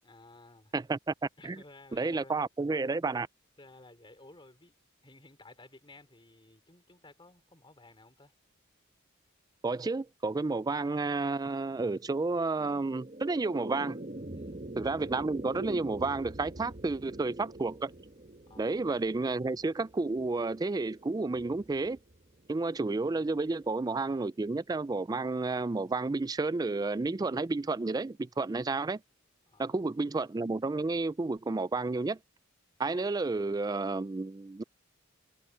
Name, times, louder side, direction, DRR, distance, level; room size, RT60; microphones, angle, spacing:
voice 1, 0.0-0.7 1.4-2.5 3.6-4.7 5.0-8.3 14.3-14.6 18.5-18.9 29.5-29.9, left 2 dB, 25° left, 3.5 m, -55 dB
voice 2, 0.7-1.1 1.4-1.6 1.9-3.3 9.6-14.0 14.8-17.9 18.6-22.0 22.5-29.0 29.6-32.2 32.8-34.6, right 3 dB, 20° right, 0.3 m, -31 dB
sound 1, 12.6-23.1, right 1 dB, 35° right, 1.0 m, -45 dB
head